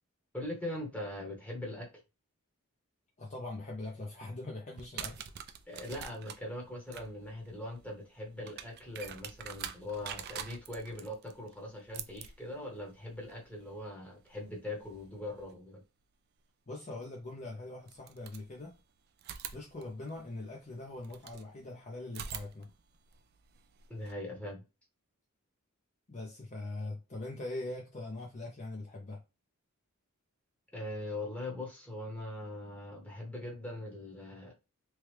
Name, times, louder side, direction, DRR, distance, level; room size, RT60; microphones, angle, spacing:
voice 1, 0.3-1.9 5.7-15.8 23.9-24.6 30.7-34.5, left 1 dB, 5° left, 0.9 m, -41 dB
voice 2, 3.2-5.3 16.7-18.8 19.5-22.7 26.1-29.2, left 2 dB, 35° left, 0.6 m, -42 dB
sound 1, 4.7-15.5 17.0-17.1 17.8-18.8 19.2-21.5 22.1-24.1, right 8 dB, 45° right, 0.3 m, -47 dB
3.1 x 2.3 x 3.1 m
head